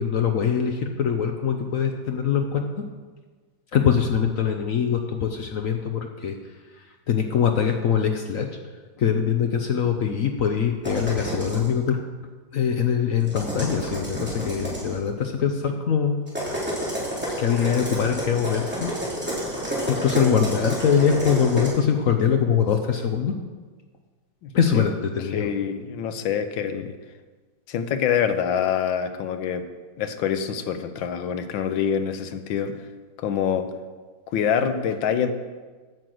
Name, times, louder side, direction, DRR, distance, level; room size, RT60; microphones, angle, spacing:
voice 1, 0.0-2.8 3.7-6.4 7.1-8.5 9.0-12.0 12.5-16.2 17.4-18.9 19.9-23.3 24.5-25.5, left 7 dB, 60° left, 5 dB, 0.9 m, -23 dB
sound 1, 10.8-11.7 13.2-14.9 16.3-21.7, equal, 5° right, 2.8 m, -30 dB
voice 2, 24.4-24.8 25.3-26.9 27.7-29.6 30.0-32.7 33.2-33.7 34.3-35.3, left 8 dB, 85° left, 9 dB, 1.5 m, -25 dB
9.2 x 6.3 x 7.7 m, 1.4 s
omnidirectional pair, 2.0 m